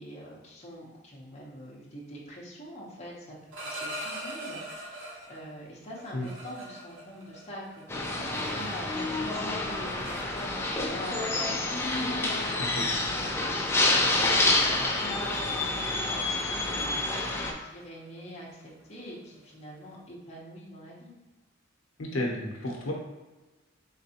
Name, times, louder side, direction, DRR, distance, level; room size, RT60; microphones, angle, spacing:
voice 1, 0.0-13.1 13.5-21.1, equal, 35° left, -5 dB, 0.8 m, -45 dB
sound 1, 3.3-5.4 6.0-9.0 9.3-10.8 11.7-11.9 12.2-12.5 12.9-13.2 13.6-13.8 14.1-14.4 14.6-20.0, right 1 dB, 60° right, 0.8 m, -43 dB
sound 2, 7.9-17.5, left 2 dB, 10° left, 0.4 m, -28 dB
voice 2, 22.0-22.9, left 1 dB, 80° left, -1 dB, 0.7 m, -31 dB
3.9 x 3.2 x 2.8 m, 1.1 s
head